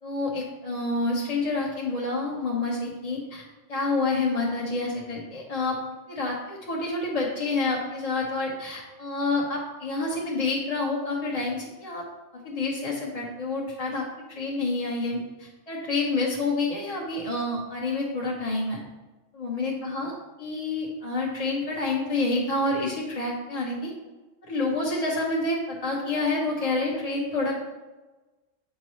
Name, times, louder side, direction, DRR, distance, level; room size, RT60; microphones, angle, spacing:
voice 1, 0.0-3.4 3.7-5.8 6.1-12.0 12.4-14.1 14.4-18.8 19.3-20.1 20.4-23.9 24.4-27.5, left 3 dB, 35° left, -3 dB, 0.9 m, -28 dB
7.8 x 5.2 x 3.1 m, 1.2 s
omnidirectional pair, 1.3 m